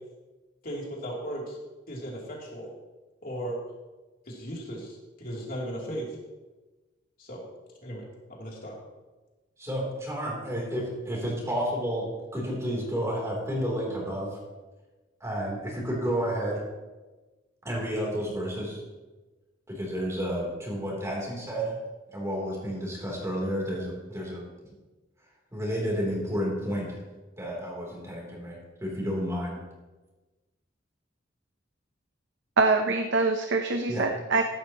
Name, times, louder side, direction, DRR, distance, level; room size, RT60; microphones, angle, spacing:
voice 1, 0.6-1.6 1.9-2.7 3.2-3.6 4.3-6.1 7.2-7.4 7.8-8.0 8.4-8.7, equal, 50° left, -3 dB, 3.1 m, -36 dB
voice 2, 9.6-14.4 15.2-16.6 17.7-18.8 19.7-21.7 22.1-24.5 25.5-27.0 27.4-29.6 33.9-34.1, equal, 15° right, -3 dB, 3.3 m, -31 dB
voice 3, 32.6-34.4, right 3 dB, 65° right, 5 dB, 0.7 m, -24 dB
15.0 x 11.5 x 3.0 m, 1.2 s
head